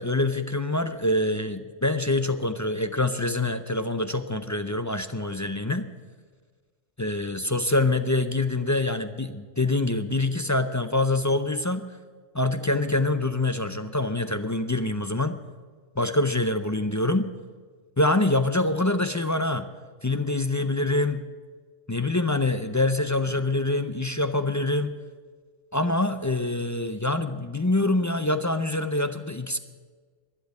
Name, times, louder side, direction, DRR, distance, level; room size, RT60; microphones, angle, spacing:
voice 1, 0.0-5.9 7.0-11.9 12.3-15.4 16.0-17.3 18.0-19.7 20.0-21.2 21.9-24.9 25.7-29.6, left 2 dB, 25° left, 9 dB, 0.3 m, -25 dB
12.0 x 11.0 x 9.5 m, 1.5 s
omnidirectional pair, 1.2 m